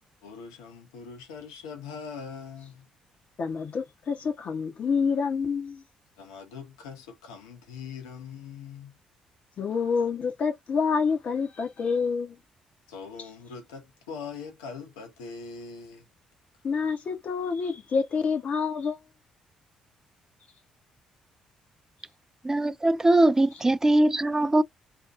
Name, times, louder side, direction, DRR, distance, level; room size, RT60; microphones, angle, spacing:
voice 1, 0.2-2.9 6.2-8.9 12.9-16.1, left 5 dB, 75° left, 0.7 m, -42 dB
voice 2, 3.4-5.8 9.6-12.4 16.6-19.0, left 5 dB, 50° left, 0.8 m, -27 dB
voice 3, 22.4-24.6, right 1 dB, 15° right, 0.3 m, -21 dB
2.7 x 2.2 x 2.4 m
figure-of-eight pair, 45°, 3 cm